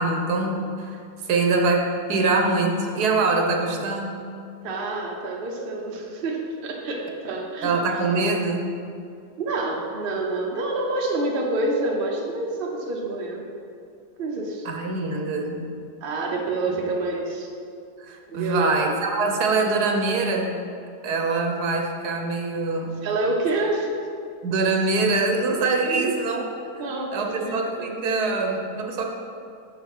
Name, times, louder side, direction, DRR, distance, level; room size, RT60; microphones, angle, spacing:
voice 1, 0.0-4.2 7.6-8.8 14.6-15.6 16.7-16.8 18.0-20.6 21.0-23.1 24.4-26.5 27.1-29.0, right 3 dB, 75° right, 2 dB, 1.4 m, -24 dB
voice 2, 4.6-7.7 9.4-13.5 14.2-14.7 16.0-17.5 18.3-18.8 23.0-23.9 25.8-26.1 26.8-27.9, right 2 dB, 40° right, -1 dB, 0.9 m, -27 dB
6.9 x 6.0 x 4.9 m, 2.4 s
omnidirectional pair, 1.7 m